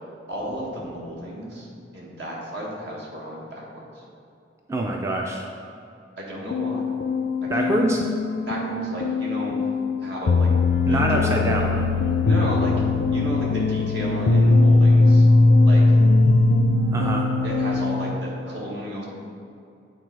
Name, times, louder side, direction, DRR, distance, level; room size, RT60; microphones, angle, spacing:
voice 1, 0.3-1.7 1.9-4.0 6.2-6.9 7.4-7.8 8.5-9.6 10.0-10.5 10.9-11.6 12.3-12.7 13.1-15.2 15.6-15.8 17.4-19.0, right 1 dB, 65° right, -4 dB, 1.7 m, -33 dB
voice 2, 4.7-5.4 7.5-8.0 10.9-11.8 16.9-17.3, right 1 dB, 15° right, 0 dB, 0.4 m, -24 dB
sound 1, 6.5-18.1, left 3 dB, 70° left, 0.4 m, -20 dB
8.8 x 3.9 x 4.7 m, 2.6 s
head